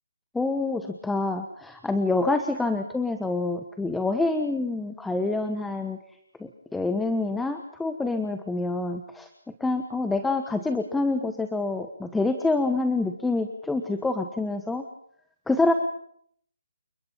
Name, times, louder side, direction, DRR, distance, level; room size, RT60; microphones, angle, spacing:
voice 1, 0.3-6.0 6.4-9.3 9.6-14.8 15.5-15.7, left 3 dB, 5° left, 7 dB, 1.2 m, -27 dB
29.0 x 21.0 x 5.6 m, 0.67 s
hypercardioid pair, 155°, 0 cm